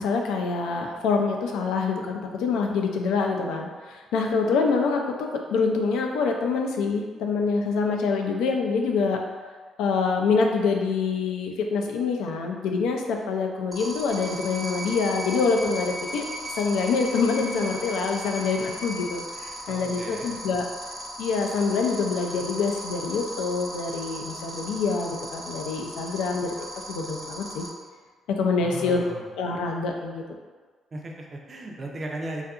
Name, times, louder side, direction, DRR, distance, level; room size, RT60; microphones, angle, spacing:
voice 1, 0.0-9.2 9.8-16.3 16.5-20.6 21.2-26.5 26.8-27.6 28.4-29.0 29.4-30.2, left 4 dB, 90° left, 2 dB, 0.3 m, -26 dB
sound 1, 13.7-27.7, right 1 dB, 25° left, 0.7 m, -37 dB
sound 2, 14.1-19.1, equal, 75° right, 0.8 m, -40 dB
voice 2, 19.7-20.3 28.6-29.3 30.9-32.5, right 1 dB, 35° right, 0 dB, 0.4 m, -36 dB
2.7 x 2.4 x 2.3 m, 1.4 s
cardioid pair, 90°, 0 cm